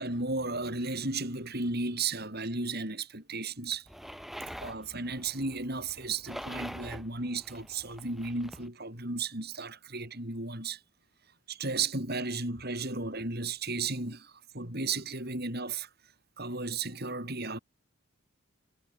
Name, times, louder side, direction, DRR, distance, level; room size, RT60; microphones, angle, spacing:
voice 1, 0.0-3.9 4.6-10.8 11.5-15.9 16.4-17.6, right 3 dB, 45° right, 7.4 m, -34 dB
sound 1, 3.9-8.7, equal, ahead, 2.3 m, -45 dB
head